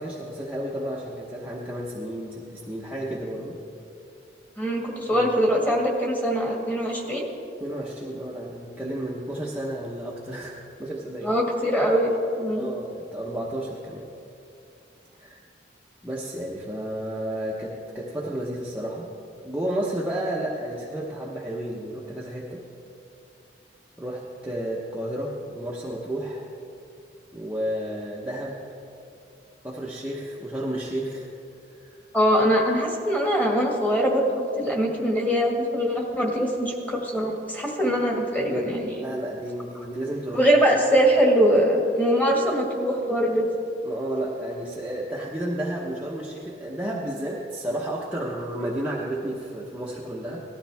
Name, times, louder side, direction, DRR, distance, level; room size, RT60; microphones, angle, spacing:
voice 1, 0.0-3.6 5.1-5.3 7.6-11.3 12.5-14.1 15.2-15.4 16.0-19.1 19.4-22.6 24.0-26.4 27.3-28.6 29.6-31.3 31.7-31.9 38.9-40.8 43.8-50.4, right 1 dB, 10° right, -5 dB, 1.0 m, -32 dB
voice 2, 4.6-7.3 11.2-12.1 12.4-12.7 32.1-39.0 40.3-43.5, equal, 10° left, -2 dB, 1.8 m, -22 dB
18.5 x 13.0 x 3.5 m, 2.6 s
head